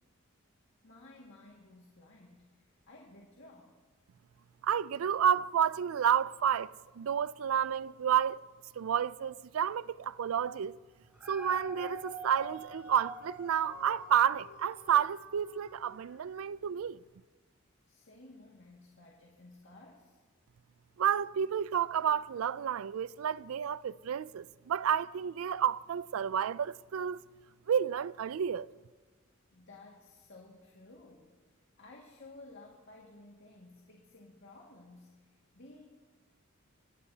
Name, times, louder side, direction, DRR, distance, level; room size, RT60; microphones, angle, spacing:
voice 1, 0.8-3.8 17.9-20.2 29.5-35.8, left 2 dB, 60° left, 2.0 m, -55 dB
voice 2, 4.6-8.4 8.8-10.8 11.3-17.0 21.0-27.2 27.7-28.7, right 8 dB, 90° right, 0.4 m, -30 dB
Dog, 11.0-16.3 16.8-16.9, equal, 5° right, 6.8 m, -47 dB
25.5 x 18.5 x 2.8 m
head